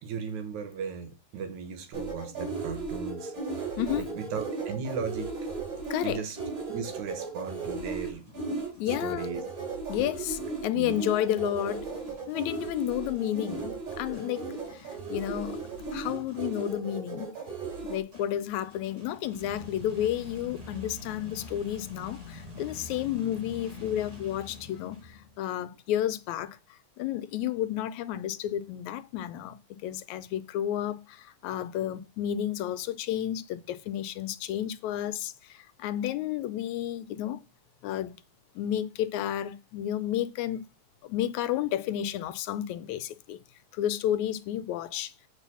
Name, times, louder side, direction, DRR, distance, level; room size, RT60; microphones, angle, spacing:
voice 1, 0.0-3.3 3.6-5.3 6.0-6.4 6.7-8.3 8.9-9.4 10.8-11.0, right 6 dB, 85° right, 2.7 m, -36 dB
sound 1, 1.9-18.0, right 4 dB, 55° right, 4.5 m, -36 dB
voice 2, 3.8-4.2 5.9-6.2 8.5-9.3 9.9-11.9 12.3-15.6 15.9-17.3 17.9-29.6 29.8-37.4 37.8-38.2 38.6-40.6 41.0-43.4 43.7-45.1, left 11 dB, 80° left, 2.0 m, -31 dB
sound 2, 7.3-9.0 9.9-16.9 18.1-25.4, left 3 dB, 20° right, 5.0 m, -47 dB
8.2 x 4.4 x 6.9 m
omnidirectional pair, 3.3 m